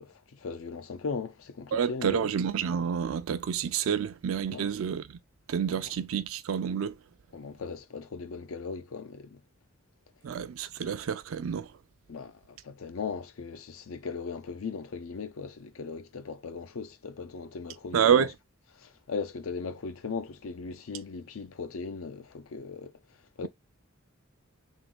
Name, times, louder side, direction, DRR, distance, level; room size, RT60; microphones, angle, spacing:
voice 1, 0.0-2.3 4.5-4.7 7.3-9.4 12.1-18.3 18.8-22.9 23.4-23.5, left 5 dB, 85° left, 0.6 m, -38 dB
voice 2, 1.7-5.2 5.5-7.0 10.2-11.7 17.9-18.3, right 7 dB, 80° right, 0.4 m, -28 dB
3.6 x 2.5 x 3.7 m
head